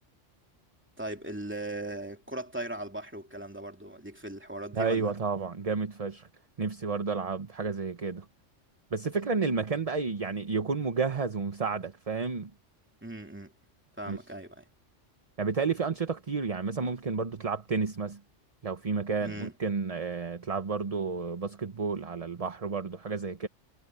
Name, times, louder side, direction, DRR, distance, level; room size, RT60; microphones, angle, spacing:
voice 1, 1.0-5.1 13.0-13.5 14.0-14.7 19.2-19.5, right 1 dB, 10° right, 2.6 m, -38 dB
voice 2, 4.7-6.3 6.6-8.3 8.9-12.5 14.1-14.2 15.4-18.2 18.6-23.5, right 4 dB, 30° right, 1.0 m, -31 dB
omnidirectional pair, 1.3 m